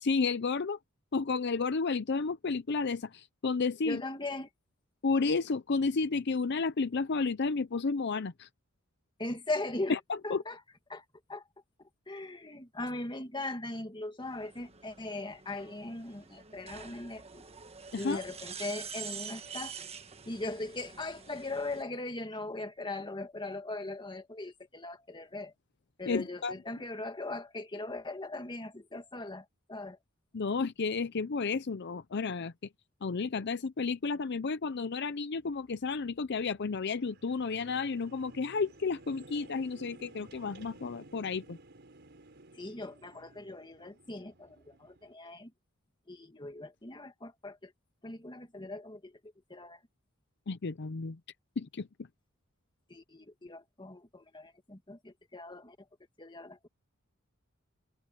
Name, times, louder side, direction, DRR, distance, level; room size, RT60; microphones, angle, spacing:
voice 1, 0.0-0.8 1.1-4.0 5.0-8.5 9.9-10.0 10.3-10.4 17.9-18.2 26.1-26.5 30.3-32.5 33.0-41.6 50.5-51.2 51.6-51.9, left 4 dB, 55° left, 0.6 m, -32 dB
voice 2, 3.8-4.5 9.2-10.0 10.2-10.6 10.9-11.4 12.1-17.4 18.0-19.7 20.2-25.5 26.0-30.0 42.5-45.5 46.1-47.7 48.0-49.8 52.9-55.8 56.2-56.7, left 2 dB, 25° left, 2.0 m, -39 dB
sound 1, 14.2-21.8, right 7 dB, 30° right, 1.3 m, -46 dB
sound 2, 35.4-45.1, right 2 dB, 55° right, 4.7 m, -55 dB
open air
head